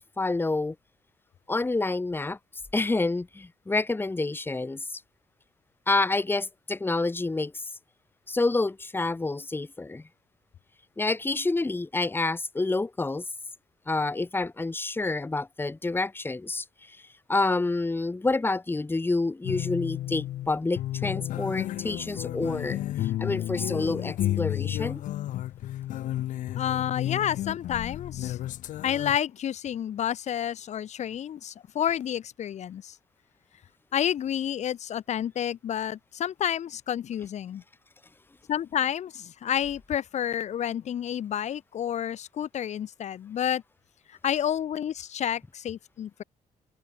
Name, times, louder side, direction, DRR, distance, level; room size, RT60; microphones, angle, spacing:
voice 1, 0.2-0.7 1.5-2.4 2.7-5.0 5.9-7.5 8.3-10.0 11.0-13.2 13.9-16.6 17.3-22.8 23.2-25.0, left 3 dB, 15° left, 2.3 m, -28 dB
sound 1, 19.4-29.2, left 13 dB, 85° left, 2.3 m, -32 dB
voice 2, 26.5-28.4 28.8-33.0 33.9-37.6 38.5-43.6 44.1-46.2, left 10 dB, 60° left, 2.8 m, -30 dB
open air
cardioid pair, 110°, 13 cm